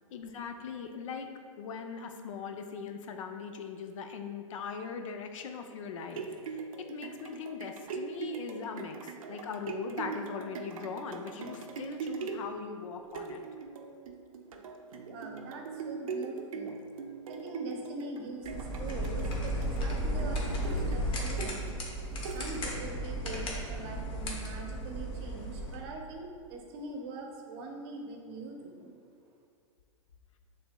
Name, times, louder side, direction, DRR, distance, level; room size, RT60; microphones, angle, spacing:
voice 1, 0.1-1.3 1.6-13.4, left 6 dB, 70° left, 6 dB, 0.5 m, -40 dB
sound 1, 5.8-23.0 23.5-23.6, right 4 dB, 85° right, 0.5 m, -41 dB
voice 2, 15.1-21.7 22.3-28.9, right 3 dB, 50° right, 2 dB, 0.7 m, -43 dB
Printer Buttons, 18.4-25.8, equal, 30° left, 0.8 m, -34 dB
6.7 x 3.2 x 2.2 m, 2.1 s
hypercardioid pair, 120°, 17 cm